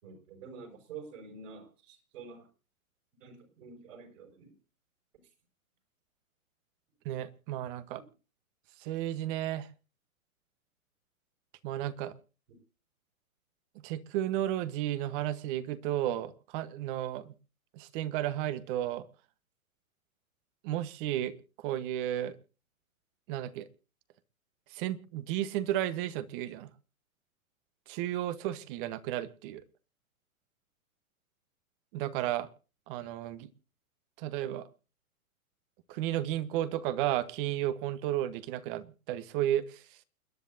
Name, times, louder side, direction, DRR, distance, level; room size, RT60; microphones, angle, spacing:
voice 1, 0.0-2.5 3.2-4.5, right 5 dB, 65° right, 4 dB, 6.6 m, -48 dB
voice 2, 7.0-8.0 8.8-9.7 11.6-12.1 13.8-17.3 17.7-19.1 20.6-22.4 23.3-23.7 24.7-26.7 27.9-29.6 31.9-32.5 32.9-33.5 34.2-34.7 35.9-39.8, right 12 dB, 40° right, 15 dB, 1.3 m, -33 dB
29.0 x 10.5 x 2.8 m, 0.34 s
hypercardioid pair, 130°, 42 cm